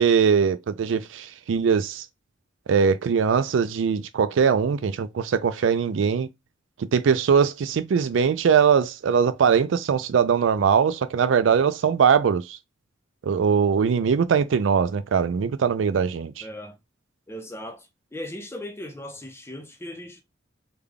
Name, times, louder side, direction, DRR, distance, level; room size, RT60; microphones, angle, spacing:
voice 1, 0.0-2.0 2.7-6.3 6.8-12.6 13.2-16.4, right 6 dB, 75° right, 0.4 m, -21 dB
voice 2, 16.4-16.8 17.3-20.2, left 1 dB, 15° left, 0.6 m, -38 dB
3.4 x 2.2 x 3.6 m
head